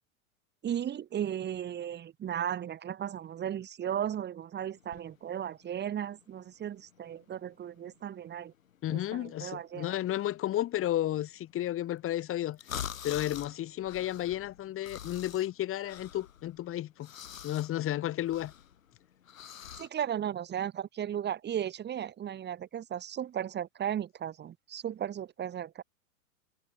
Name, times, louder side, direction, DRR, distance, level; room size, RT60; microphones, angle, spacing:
voice 1, 0.6-8.5 8.9-10.0 19.8-25.8, right 10 dB, 25° right, 4.6 m, -35 dB
sound 1, 4.8-19.9, left 9 dB, 70° left, 7.9 m, -46 dB
voice 2, 8.8-12.6 13.0-17.1 17.4-18.5, left 13 dB, 30° left, 7.7 m, -32 dB
figure-of-eight pair, 100°, 41 cm